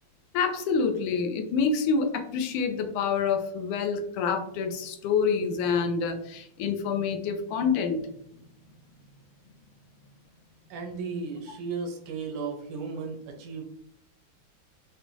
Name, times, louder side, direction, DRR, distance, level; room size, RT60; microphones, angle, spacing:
voice 1, 0.3-8.0, left 5 dB, 85° left, 5 dB, 1.5 m, -27 dB
voice 2, 10.7-13.6, right 4 dB, 90° right, 2 dB, 1.7 m, -35 dB
6.1 x 2.2 x 2.7 m, 0.75 s
omnidirectional pair, 2.3 m